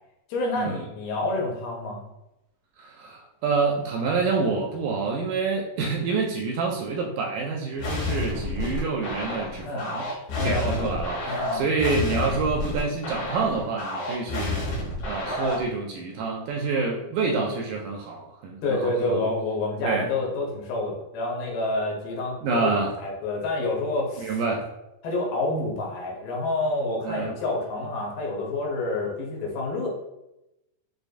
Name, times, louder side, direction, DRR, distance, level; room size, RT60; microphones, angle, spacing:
voice 1, 0.3-2.1 9.6-9.9 10.3-11.0 11.3-11.7 18.6-24.4 25.0-29.9, left 2 dB, 90° left, -1 dB, 2.5 m, -28 dB
voice 2, 2.8-10.0 10.4-14.7 15.1-19.3 19.8-20.1 22.4-22.9 24.2-24.6 27.0-27.4, right 4 dB, 80° right, 0 dB, 1.8 m, -27 dB
sound 1, 7.8-15.7, left 1 dB, 60° left, 2.1 m, -30 dB
6.6 x 2.3 x 2.5 m, 0.92 s
omnidirectional pair, 3.9 m